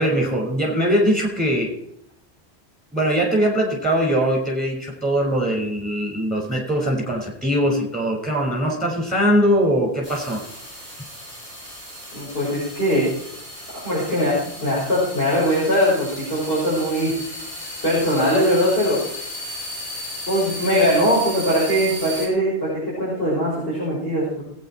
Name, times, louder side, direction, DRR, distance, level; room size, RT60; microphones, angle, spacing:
voice 1, 0.0-1.8 2.9-10.4, equal, ahead, -1 dB, 5.7 m, -21 dB
sound 1, 10.0-22.3, left 1 dB, 30° left, 5.4 m, -35 dB
voice 2, 12.1-13.1 13.7-17.1 17.8-19.0 20.3-24.4, equal, 60° left, -9 dB, 6.9 m, -21 dB
21.0 x 9.4 x 4.6 m, 0.73 s
omnidirectional pair, 1.1 m